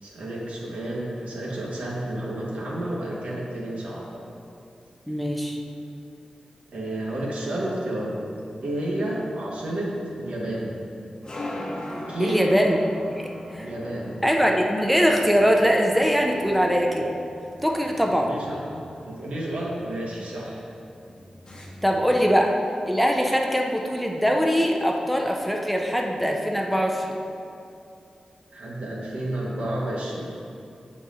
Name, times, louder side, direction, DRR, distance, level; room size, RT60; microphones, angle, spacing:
voice 1, 0.0-4.1 6.7-8.1 8.6-9.9 10.2-10.7 12.1-12.5 13.6-14.2 18.2-18.6 19.0-20.6 22.0-22.1 28.5-30.2, right 1 dB, 85° right, -4 dB, 1.1 m, -30 dB
voice 2, 5.1-5.6 12.2-12.9 13.2-13.7 14.2-17.1 17.6-18.4 21.8-22.6 22.9-27.2, equal, ahead, 1 dB, 0.5 m, -22 dB
sound 1, 9.4-22.3, left 1 dB, 45° left, 0.8 m, -41 dB
6.9 x 4.1 x 3.8 m, 2.6 s
wide cardioid pair, 95°, 2 cm